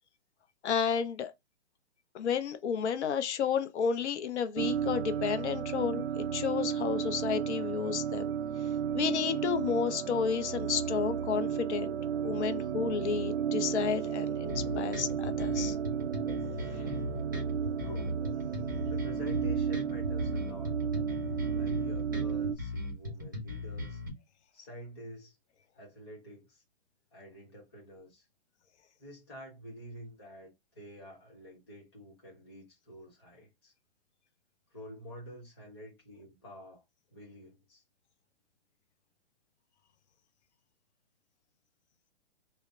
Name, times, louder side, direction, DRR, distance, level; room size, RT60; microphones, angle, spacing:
voice 1, 0.6-1.3 2.1-8.3 8.9-11.9 12.2-15.8 16.7-16.8, left 7 dB, 85° left, 0.5 m, -31 dB
sound 1, 4.6-22.5, right 8 dB, 85° right, 0.5 m, -33 dB
sound 2, 14.5-24.1, left 2 dB, 20° right, 0.4 m, -38 dB
voice 2, 17.8-18.2 18.8-20.7 21.5-24.0 24.5-25.4 25.8-26.6 27.1-28.3 29.0-33.7 34.7-36.8 37.1-37.8, equal, 25° left, 0.8 m, -48 dB
2.0 x 2.0 x 3.5 m
hypercardioid pair, 180°, 33 cm